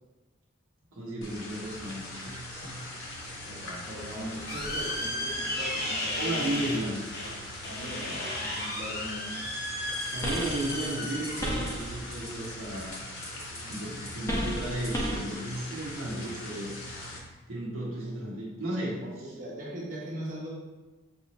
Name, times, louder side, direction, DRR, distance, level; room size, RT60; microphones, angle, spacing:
voice 1, 0.9-2.8 6.2-7.0 10.1-13.0 13.6-16.8 17.5-19.3, right 1 dB, 80° right, -6 dB, 1.0 m, -34 dB
sound 1, 1.2-17.2, left 1 dB, 75° left, 1.1 m, -41 dB
voice 2, 3.4-6.5 7.7-9.5 19.0-20.5, right 1 dB, 40° right, -4 dB, 1.0 m, -40 dB
sound 2, 3.9-12.9, left 1 dB, 50° left, 0.7 m, -35 dB
sound 3, 9.9-12.5 12.8-15.3, equal, 15° left, 0.6 m, -34 dB
5.3 x 2.7 x 3.1 m, 1.2 s
head